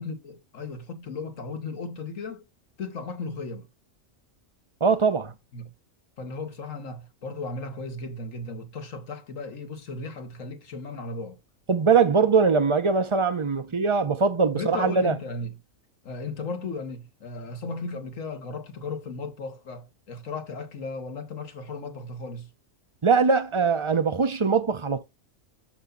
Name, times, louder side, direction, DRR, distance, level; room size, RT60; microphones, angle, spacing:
voice 1, 0.0-2.4 2.8-3.7 5.5-5.7 6.2-11.4 14.5-15.6 16.0-22.5, left 3 dB, 75° left, 1.8 m, -35 dB
voice 2, 4.8-5.3 11.7-15.2 23.0-25.0, right 5 dB, 30° right, 0.6 m, -22 dB
7.1 x 5.5 x 3.9 m
omnidirectional pair, 1.4 m